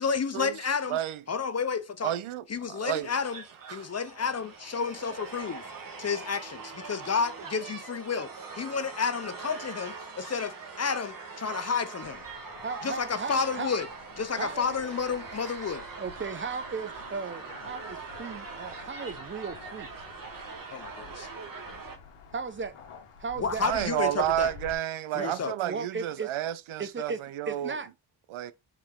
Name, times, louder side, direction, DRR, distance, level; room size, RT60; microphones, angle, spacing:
voice 1, 0.0-1.0 1.3-2.1 2.5-3.4 3.7-5.6 6.0-12.2 12.8-13.9 14.2-15.8 20.7-21.3 23.4-24.5 25.2-25.5, left 5 dB, 35° left, 0.5 m, -31 dB
voice 2, 0.9-1.2 2.0-3.1 3.7-3.9 23.6-27.8 28.3-28.5, right 12 dB, 75° right, 0.6 m, -31 dB
sound 1, 3.0-22.0, right 4 dB, 40° right, 1.5 m, -42 dB
sound 2, 12.0-24.8, left 4 dB, 85° left, 1.4 m, -50 dB
voice 3, 12.6-13.7 14.4-14.6 16.0-19.9 22.3-22.8 23.2-23.6 25.2-25.4 25.6-26.3 26.8-27.2 27.5-27.9, right 5 dB, 25° right, 0.6 m, -36 dB
4.8 x 2.8 x 3.6 m
cardioid pair, 75°, 50 cm